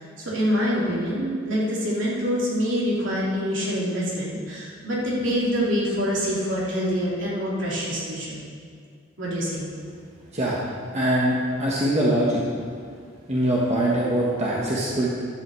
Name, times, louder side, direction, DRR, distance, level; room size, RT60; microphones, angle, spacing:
voice 1, 0.0-8.4 9.2-9.7, equal, 65° right, -6 dB, 3.1 m, -25 dB
voice 2, 10.9-12.4 13.3-15.1, right 1 dB, 35° right, -5 dB, 1.4 m, -22 dB
11.0 x 5.7 x 7.6 m, 2.1 s
head